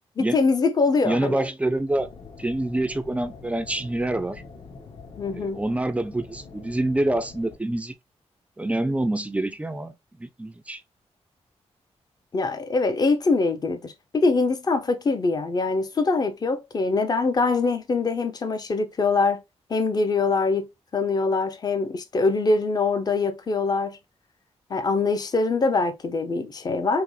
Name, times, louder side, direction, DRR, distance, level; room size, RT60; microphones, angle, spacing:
voice 1, 0.3-1.4 5.2-5.6 12.3-19.4 19.7-20.7 20.9-24.0 24.7-27.0, left 3 dB, 35° left, 0.6 m, -23 dB
voice 2, 1.0-2.1 2.4-4.4 5.3-7.9 8.6-9.9 10.2-10.8, right 1 dB, 10° right, 0.4 m, -26 dB
sound 1, 1.9-7.6, left 4 dB, 60° left, 1.1 m, -44 dB
5.6 x 2.1 x 3.1 m
wide cardioid pair, 140°, 11 cm